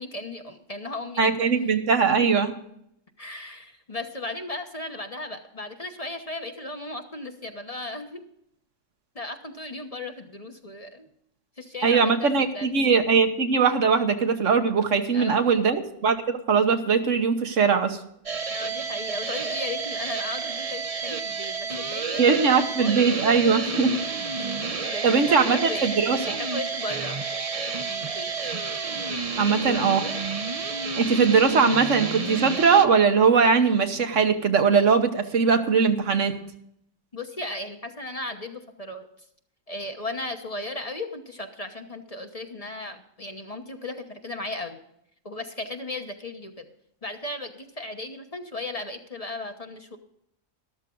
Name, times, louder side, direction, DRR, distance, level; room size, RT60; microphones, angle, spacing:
voice 1, 0.0-1.5 2.1-2.3 3.2-8.2 9.1-11.1 11.6-12.7 15.1-15.5 18.5-23.0 23.7-23.8 24.8-27.5 27.8-28.3 29.4-29.8 37.1-39.1 39.7-44.8 45.2-46.7 47.0-50.0, left 2 dB, 30° left, 5 dB, 1.1 m, -36 dB
voice 2, 1.2-2.5 11.8-18.0 22.2-23.9 25.0-26.2 29.4-30.1 31.0-36.3, right 5 dB, 70° right, 7 dB, 1.5 m, -20 dB
sound 1, 18.3-32.9, right 4 dB, 35° right, 0.8 m, -30 dB
13.5 x 12.5 x 3.8 m, 0.74 s
omnidirectional pair, 1.3 m